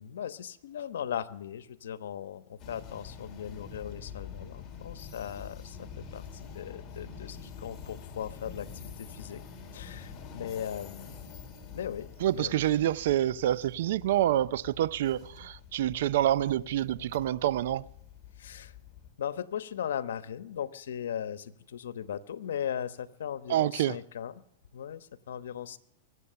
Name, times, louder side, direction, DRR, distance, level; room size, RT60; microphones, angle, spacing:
voice 1, 0.0-9.4 9.7-11.2 11.7-12.6 18.4-18.7 19.2-24.3 24.7-25.8, left 9 dB, 85° left, 1.0 m, -38 dB
sound 1, 2.6-19.1, left 6 dB, 30° left, 2.6 m, -46 dB
voice 2, 12.2-17.9 23.5-24.0, right 12 dB, 70° right, 0.5 m, -27 dB
23.5 x 8.3 x 6.8 m
supercardioid pair, 135°, 0 cm